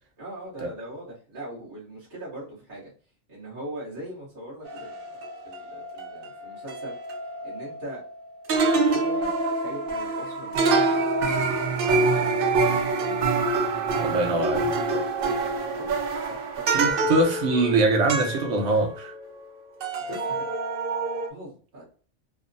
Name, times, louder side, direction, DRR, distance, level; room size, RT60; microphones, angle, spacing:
voice 1, 0.2-2.9 3.3-5.1 5.4-7.0 7.4-8.0 8.9-11.7 12.0-12.8 14.1-16.0 16.3-17.0 20.1-20.4 21.3-21.8, right 1 dB, 45° right, 1.1 m, -41 dB
sound 1, 4.6-8.2 8.5-19.5 19.8-21.3, right 3 dB, 60° right, 0.6 m, -26 dB
voice 2, 14.0-14.6 16.7-19.1, right 2 dB, 80° right, 1.0 m, -23 dB
3.0 x 2.0 x 2.5 m
omnidirectional pair, 1.3 m